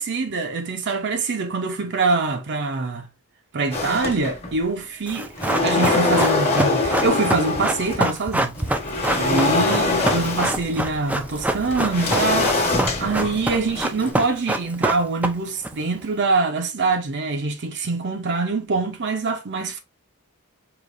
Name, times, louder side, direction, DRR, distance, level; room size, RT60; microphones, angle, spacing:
voice 1, 0.0-3.1 3.5-5.4 5.6-8.5 9.2-19.8, right 3 dB, 55° right, 0.6 m, -24 dB
sound 1, 3.7-4.7 5.1-8.1 8.5-14.1, left 3 dB, 30° left, 1.2 m, -24 dB
Run, 5.1-15.7 16.0-16.1, right 1 dB, 5° right, 0.4 m, -25 dB
4.9 x 2.9 x 2.6 m
head